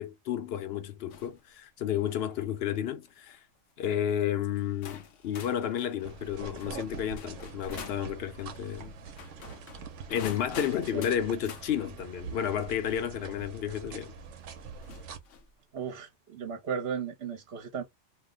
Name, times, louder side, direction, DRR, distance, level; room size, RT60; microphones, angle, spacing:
voice 1, 0.0-3.4 3.8-8.9 10.1-14.1, left 9 dB, 65° left, 0.8 m, -32 dB
sound 1, 1.1-1.4 1.9-2.2 3.1-3.4 4.2-4.3 4.8-8.1 9.1-11.7 13.4-13.5 14.8-15.5, left 7 dB, 85° left, 1.0 m, -46 dB
sound 2, 6.0-15.2, right 5 dB, 85° right, 1.0 m, -44 dB
voice 2, 15.7-17.8, right 6 dB, 60° right, 1.0 m, -35 dB
2.8 x 2.0 x 3.6 m
omnidirectional pair, 1.2 m